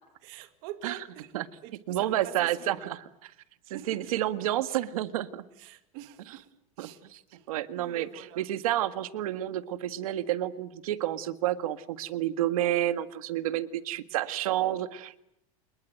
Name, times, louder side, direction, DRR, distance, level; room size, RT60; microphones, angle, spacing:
voice 1, 0.2-2.9 3.7-4.1 5.6-6.5 6.8-7.0 7.3-8.4, right 12 dB, 45° right, 2.4 m, -45 dB
voice 2, 1.9-3.0 3.7-5.4 6.8-7.2 7.5-8.1 8.4-15.2, right 13 dB, 80° right, 1.8 m, -30 dB
27.5 x 21.5 x 9.3 m
supercardioid pair, 175°, 18 cm